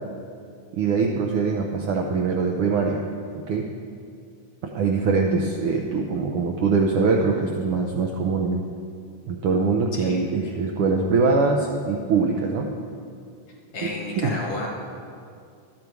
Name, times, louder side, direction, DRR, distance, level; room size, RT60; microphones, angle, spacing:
voice 1, 0.7-3.0 3.3-3.7 4.6-8.6 9.3-12.7 13.8-13.9 14.2-14.4, right 4 dB, 90° right, 1 dB, 1.2 m, -23 dB
voice 2, 13.7-14.7, left 2 dB, 45° left, -3 dB, 2.0 m, -32 dB
12.5 x 8.8 x 4.6 m, 2.4 s
omnidirectional pair, 3.4 m